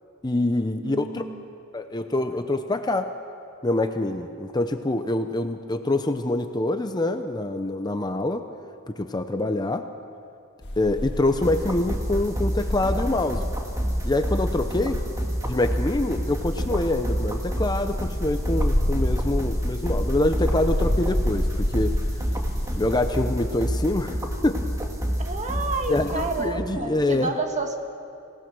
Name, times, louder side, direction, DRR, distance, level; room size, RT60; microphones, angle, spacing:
voice 1, 0.2-1.2 1.7-3.1 3.6-8.5 8.9-9.9 10.8-13.4 14.0-15.0 15.4-22.0 22.8-24.6 25.9-27.3, left 2 dB, 20° left, 7 dB, 0.7 m, -25 dB
voice 2, 0.8-1.4 25.2-27.9, right 3 dB, 35° right, 4 dB, 1.6 m, -30 dB
sound 1, 10.6-23.1, equal, 55° left, 1.9 m, -29 dB
sound 2, 11.4-26.9, equal, 15° right, 1.8 m, -29 dB
27.0 x 18.0 x 6.2 m, 2.6 s
head